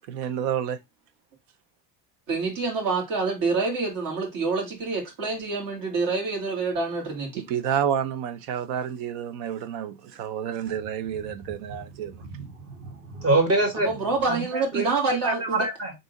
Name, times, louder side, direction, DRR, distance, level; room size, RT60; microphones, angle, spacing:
voice 1, 0.1-0.8 7.4-12.1, right 9 dB, 85° right, 0.7 m, -29 dB
voice 2, 2.3-7.4 13.9-15.7, right 4 dB, 50° right, 1.9 m, -27 dB
voice 3, 12.2-13.9 14.3-15.9, right 2 dB, 35° right, 1.6 m, -26 dB
3.6 x 2.7 x 3.9 m
cardioid pair, 135°, 42 cm